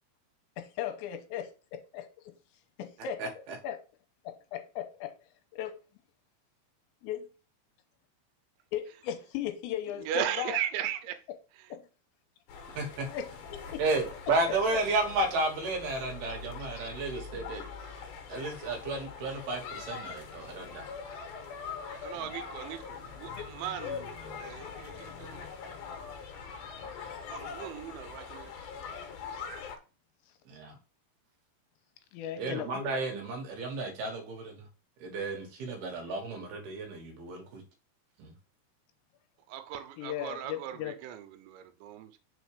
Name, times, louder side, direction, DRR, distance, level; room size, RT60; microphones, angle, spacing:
voice 1, 0.6-2.1 2.8-3.8 4.2-5.2 5.5-5.7 7.0-7.3 8.7-10.6 11.7-11.8 13.1-13.3 13.7-13.8 14.7-14.8 16.8-16.9 21.5-21.6 23.4-23.5 32.1-32.8 39.9-41.0, left 10 dB, 85° left, 3.0 m, -37 dB
voice 2, 3.2-3.6 12.8-13.1 13.8-17.6 18.3-20.9 22.1-22.3 30.5-30.8 32.4-34.6 35.0-37.6 38.2-38.3, right 2 dB, 65° right, 3.0 m, -32 dB
voice 3, 10.1-11.1 22.0-22.8 23.2-25.4 27.3-28.5 39.5-40.7 41.0-42.1, right 10 dB, 85° right, 3.2 m, -37 dB
sound 1, 12.5-29.8, left 5 dB, 65° left, 2.6 m, -43 dB
6.3 x 4.3 x 4.9 m
omnidirectional pair, 5.2 m